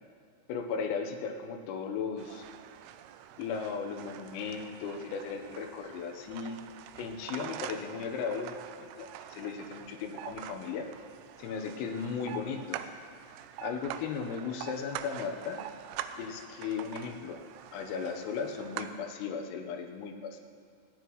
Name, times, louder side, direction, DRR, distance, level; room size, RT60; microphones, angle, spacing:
voice 1, 0.5-2.5 3.4-6.6 7.0-10.9 11.4-12.9 13.6-15.6 16.2-17.4 17.7-20.4, left 6 dB, 85° left, 4 dB, 3.7 m, -36 dB
sound 1, 2.2-18.9, right 11 dB, 85° right, 3.1 m, -45 dB
29.0 x 10.0 x 3.1 m, 2.2 s
omnidirectional pair, 5.9 m